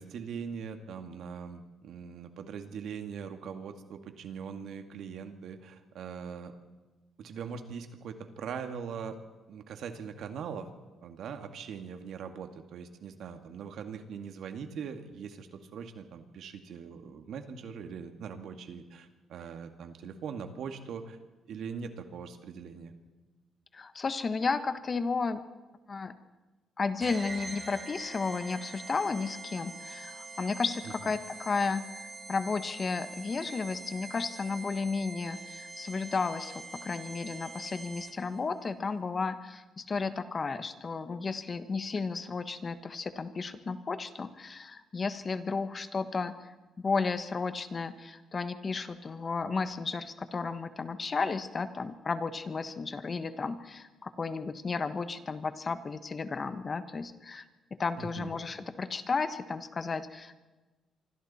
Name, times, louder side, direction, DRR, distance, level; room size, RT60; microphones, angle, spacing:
voice 1, 0.0-6.5 7.2-9.2 9.5-10.7 11.0-21.2 21.5-22.9 31.0-31.1 58.0-58.3, right 6 dB, 70° right, 6 dB, 2.2 m, -41 dB
voice 2, 23.7-25.4 25.9-26.1 26.8-46.5 46.8-57.4 57.7-60.4, left 4 dB, 35° left, 11 dB, 1.3 m, -33 dB
sound 1, 27.0-38.4, right 3 dB, 25° right, 4.7 m, -44 dB
26.0 x 24.5 x 4.4 m, 1.2 s
cardioid pair, 90°, 0 cm